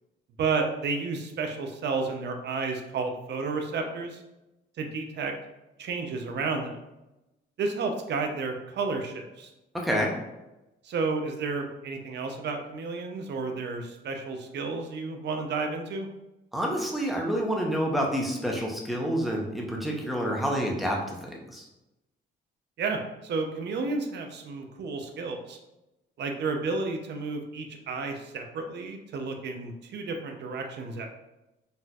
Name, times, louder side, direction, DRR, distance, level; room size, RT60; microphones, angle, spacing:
voice 1, 0.4-4.2 4.8-5.3 5.8-6.8 7.6-9.5 10.8-16.1 22.8-25.6 26.2-31.1, right 4 dB, 60° right, 4 dB, 0.6 m, -31 dB
voice 2, 9.7-10.1 16.5-21.7, equal, ahead, -1 dB, 0.7 m, -28 dB
4.1 x 2.6 x 2.3 m, 0.96 s
cardioid pair, 90°, 20 cm